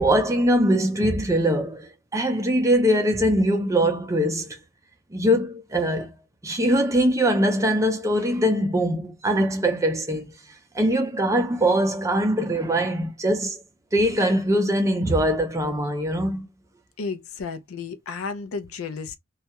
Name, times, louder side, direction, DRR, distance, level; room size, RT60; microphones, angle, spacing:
voice 1, 0.0-4.6 5.1-6.1 6.4-10.3 10.7-13.6 13.9-16.5, equal, 15° right, 0.4 m, -22 dB
voice 2, 17.0-19.2, left 4 dB, 85° left, 0.5 m, -33 dB
2.3 x 2.1 x 2.8 m
head